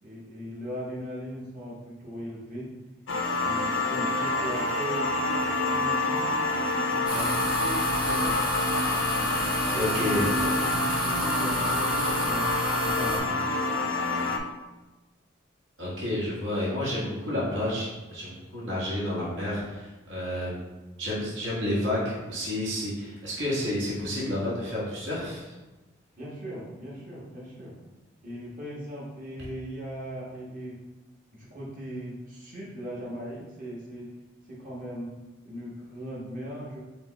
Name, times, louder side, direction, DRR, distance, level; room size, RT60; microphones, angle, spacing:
voice 1, 0.0-2.7 3.4-6.3 6.7-8.4 9.7-12.5 12.8-13.4 26.2-27.8 28.2-30.8 31.3-34.1 34.5-35.1 35.4-36.8, equal, 40° right, -6 dB, 1.3 m, -38 dB
sound 1, 3.1-14.4, left 2 dB, 80° left, 0.5 m, -27 dB
sound 2, 7.1-13.2, equal, 5° right, 0.7 m, -30 dB
voice 2, 9.7-10.2 15.8-20.6 21.0-25.5, left 1 dB, 70° right, -7 dB, 1.4 m, -30 dB
5.2 x 2.3 x 3.9 m, 1.1 s
head